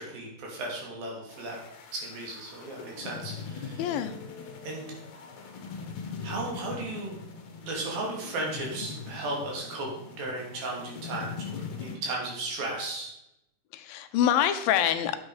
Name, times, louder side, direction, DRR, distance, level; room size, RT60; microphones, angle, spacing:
voice 1, 0.0-1.6 1.9-3.9 4.6-4.9 6.2-7.1 7.6-9.9 10.2-13.1, right 2 dB, 75° right, -1 dB, 4.2 m, -35 dB
sound 1, 1.3-12.0, left 5 dB, 60° left, 2.3 m, -41 dB
voice 2, 3.8-4.2 13.7-15.2, left 10 dB, 80° left, 10 dB, 2.4 m, -25 dB
9.8 x 7.4 x 4.9 m, 0.85 s
omnidirectional pair, 4.2 m